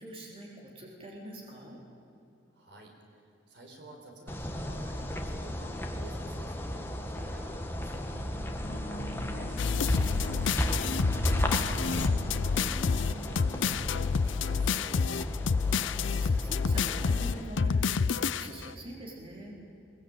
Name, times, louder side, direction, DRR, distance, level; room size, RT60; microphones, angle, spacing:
voice 1, 0.0-1.8 8.1-8.7 15.3-19.6, right 1 dB, 30° right, -2 dB, 3.8 m, -44 dB
voice 2, 2.5-8.1 8.7-11.4 11.6-15.0, right 1 dB, 60° right, 2 dB, 4.3 m, -51 dB
sound 1, 4.3-17.4, equal, 10° left, 1.5 m, -35 dB
sound 2, 8.6-14.1, left 1 dB, 40° left, 3.4 m, -41 dB
sound 3, 9.6-18.7, left 5 dB, 75° left, 0.5 m, -29 dB
22.5 x 22.0 x 8.9 m, 2.7 s
head